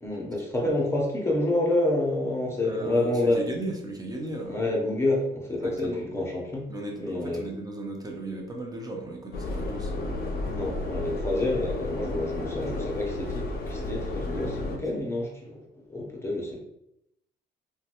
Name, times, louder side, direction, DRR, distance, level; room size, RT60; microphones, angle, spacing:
voice 1, 0.0-3.4 4.5-6.7 7.0-7.4 10.5-15.6 15.9-16.6, left 2 dB, 15° left, -2 dB, 0.8 m, -28 dB
voice 2, 2.6-4.6 5.6-6.0 6.7-9.9, right 2 dB, 20° right, 1 dB, 0.7 m, -36 dB
Subway metro underground, 9.3-14.8, left 2 dB, 50° left, 0.6 m, -32 dB
3.0 x 2.2 x 2.9 m, 0.81 s
cardioid pair, 90°, 20 cm